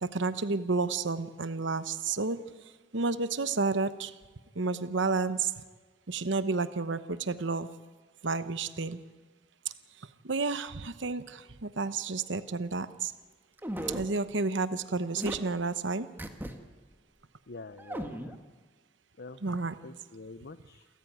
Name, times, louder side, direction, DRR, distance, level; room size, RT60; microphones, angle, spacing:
voice 1, 0.0-2.4 2.9-4.1 4.6-5.5 6.1-7.7 8.2-9.0 10.2-13.1 13.9-16.1 19.4-19.8, right 3 dB, 65° right, 12 dB, 1.0 m, -31 dB
sound 1, 13.6-14.1 15.2-15.4 16.2-16.5 16.9-17.0 17.8-18.3, right 1 dB, 10° right, 1.7 m, -36 dB
voice 2, 17.5-18.4 19.2-19.4 19.8-20.9, left 3 dB, 55° left, 11 dB, 0.8 m, -46 dB
28.5 x 14.0 x 9.5 m, 1.4 s
head